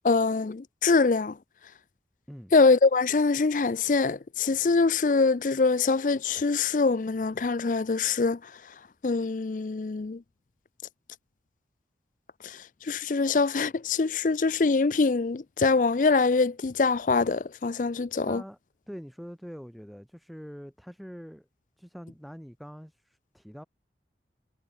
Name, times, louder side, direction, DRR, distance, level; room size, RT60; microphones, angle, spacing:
voice 1, 0.0-1.4 2.5-8.5 9.0-10.2 12.4-18.4, left 4 dB, 45° left, 0.4 m, -24 dB
voice 2, 18.2-18.6 18.9-21.5 21.8-23.6, equal, ahead, 3.1 m, -44 dB
head